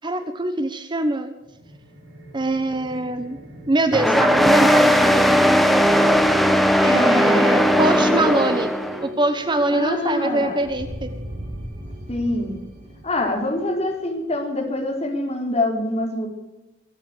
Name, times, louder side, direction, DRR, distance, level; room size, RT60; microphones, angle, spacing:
voice 1, 0.0-1.3 2.3-3.4 3.7-5.4 6.8-8.7 9.0-11.1, right 2 dB, 25° right, 9 dB, 1.0 m, -23 dB
sound 1, 1.4-14.9, equal, 85° right, 6.6 m, -39 dB
sound 2, 3.9-9.0, equal, ahead, 1.2 m, -17 dB
voice 2, 6.0-6.3 6.9-8.6 9.7-10.6 12.1-12.6 13.0-16.3, left 1 dB, 35° left, 1 dB, 4.2 m, -25 dB
24.0 x 8.5 x 6.6 m, 1.0 s
head